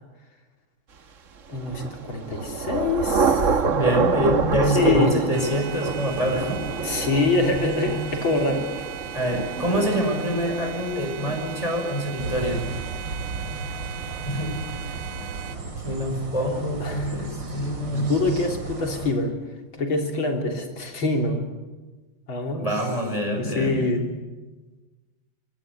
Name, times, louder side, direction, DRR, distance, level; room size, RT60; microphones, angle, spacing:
voice 1, 1.5-3.6 4.7-5.2 6.8-8.9 16.5-17.6 17.9-19.3 19.8-21.4 22.3-22.7 23.4-24.0, left 3 dB, 70° left, 3 dB, 4.1 m, -25 dB
Thunder / Rain, 1.5-13.1, right 5 dB, 45° right, 1.4 m, -27 dB
voice 2, 3.7-6.6 7.0-7.1 9.1-12.6 14.3-14.5 15.8-18.1 22.5-23.9, equal, 15° left, 3 dB, 5.7 m, -26 dB
sound 1, 5.3-15.6, right 8 dB, 85° right, 2.3 m, -38 dB
sound 2, 12.2-19.1, right 3 dB, 60° right, 3.6 m, -34 dB
25.5 x 21.0 x 9.5 m, 1.2 s
omnidirectional pair, 2.3 m